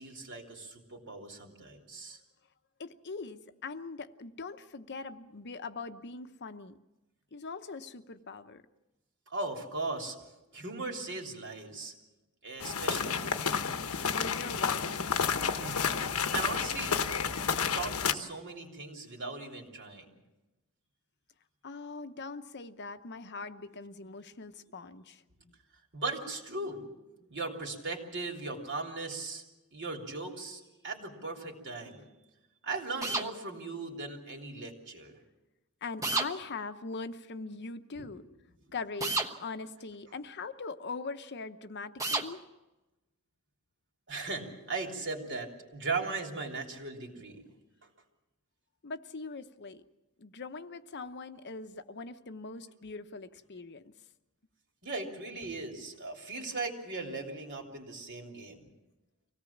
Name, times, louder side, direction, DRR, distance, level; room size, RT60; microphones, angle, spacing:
voice 1, 0.0-2.2 9.3-10.2 10.5-11.9 12.4-13.5 15.5-17.2 17.7-20.0 25.9-26.9 27.3-29.4 29.7-32.0 32.6-35.2 37.9-38.2 44.1-47.4 54.8-58.6, right 3 dB, 55° right, 2 dB, 3.3 m, -38 dB
voice 2, 2.8-6.8 7.3-8.6 14.1-15.2 21.6-25.2 35.8-38.2 38.7-42.4 48.8-49.8 50.2-53.9, left 4 dB, 50° left, 9 dB, 0.9 m, -41 dB
sound 1, 12.6-18.1, left 6 dB, 85° left, 1.1 m, -30 dB
sound 2, 33.0-33.3 36.0-36.3 39.0-39.3 42.0-42.3, right 3 dB, 15° right, 1.2 m, -30 dB
25.0 x 17.5 x 7.3 m, 1.0 s
head